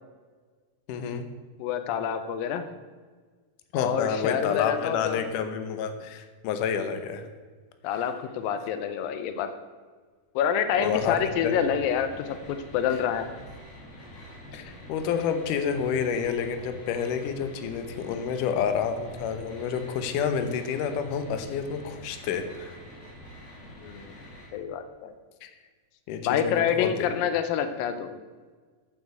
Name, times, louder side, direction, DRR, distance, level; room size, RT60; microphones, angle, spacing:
voice 1, 0.9-1.2 3.7-7.2 10.8-11.2 11.4-11.5 14.5-22.8 25.4-25.5 26.1-27.1, left 7 dB, 75° left, 8 dB, 2.4 m, -29 dB
voice 2, 1.6-2.6 3.7-5.2 7.8-9.5 10.4-13.3 23.8-24.1 24.5-25.1 26.3-28.2, left 8 dB, 90° left, 9 dB, 2.6 m, -27 dB
sound 1, 10.7-24.5, left 1 dB, 45° left, 4.0 m, -46 dB
8.8 x 8.5 x 8.0 m, 1.5 s
omnidirectional pair, 4.0 m